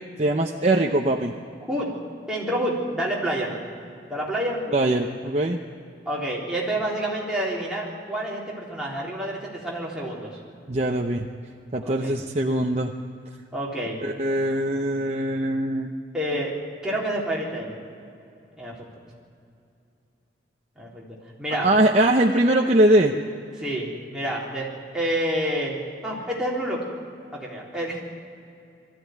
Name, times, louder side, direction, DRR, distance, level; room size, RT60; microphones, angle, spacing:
voice 1, 0.2-1.3 4.7-5.6 10.7-11.3 11.7-12.9 14.0-15.9 21.6-23.2, right 1 dB, 35° right, 1 dB, 0.8 m, -21 dB
voice 2, 2.3-3.6 4.1-4.7 6.1-10.4 11.8-12.2 13.5-14.0 16.1-16.5 16.8-17.8 18.6-18.7 20.8-21.7 23.6-25.8 26.0-26.8 27.3-28.0, right 1 dB, 5° right, -5 dB, 3.7 m, -28 dB
20.5 x 14.0 x 9.3 m, 2.5 s
head